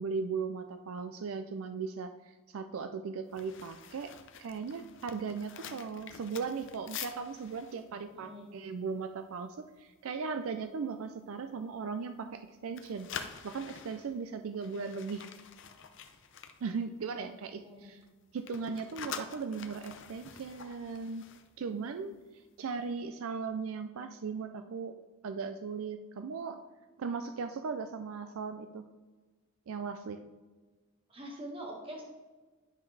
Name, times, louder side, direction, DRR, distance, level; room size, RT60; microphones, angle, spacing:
voice 1, 0.0-4.1 4.4-13.1 13.4-15.2 16.6-18.0 18.3-21.2 21.6-22.1 22.6-24.9 25.2-26.6 27.0-28.8 29.7-30.2, right 5 dB, 70° right, 8 dB, 0.4 m, -38 dB
sound 1, 3.3-9.4 9.7-10.0 10.3-10.7 11.2-12.4 12.7-17.4 17.7-22.2 22.5-22.7, left 7 dB, 60° left, 0.6 m, -47 dB
voice 2, 8.1-8.5 17.6-18.0 31.1-32.0, right 1 dB, 25° right, -1 dB, 1.6 m, -44 dB
10.0 x 5.8 x 3.3 m, 1.3 s
head